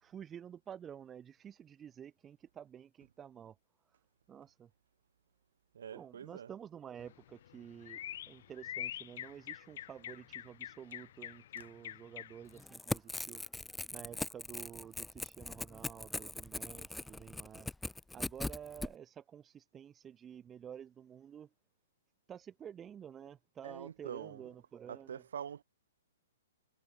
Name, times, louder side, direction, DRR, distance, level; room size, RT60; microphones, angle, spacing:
voice 1, 0.0-3.6 4.3-4.7 5.9-8.0 8.3-13.4 13.9-17.7 18.1-21.5 22.3-25.2, right 8 dB, 20° right, 2.4 m, -50 dB
voice 2, 5.7-6.5 11.6-11.7 12.9-13.3 23.6-24.5 24.9-25.6, right 8 dB, 70° right, 4.3 m, -46 dB
sound 1, 7.0-12.6, left 12 dB, 55° left, 2.8 m, -46 dB
Crackle / Tearing, 12.5-18.9, left 2 dB, 5° left, 2.0 m, -40 dB
hypercardioid pair, 125°, 0 cm